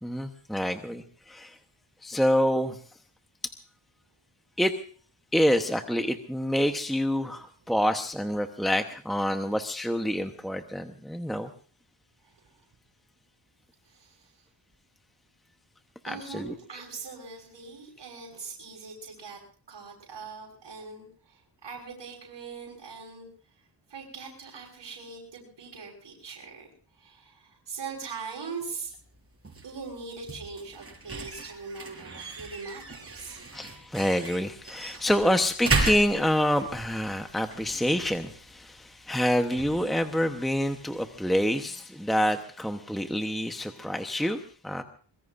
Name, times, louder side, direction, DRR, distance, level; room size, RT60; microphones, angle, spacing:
voice 1, 0.0-1.6 2.0-2.8 4.6-4.7 5.3-11.5 16.0-16.5 33.5-44.8, equal, ahead, 6 dB, 1.0 m, -27 dB
voice 2, 13.8-14.5 16.0-19.4 19.7-23.3 23.6-28.9 29.6-33.4 35.0-35.1, right 4 dB, 75° right, -2 dB, 5.6 m, -41 dB
sound 1, 28.8-41.6, right 3 dB, 30° right, 4.6 m, -36 dB
24.5 x 22.0 x 2.6 m, 0.42 s
wide cardioid pair, 125°, 44 cm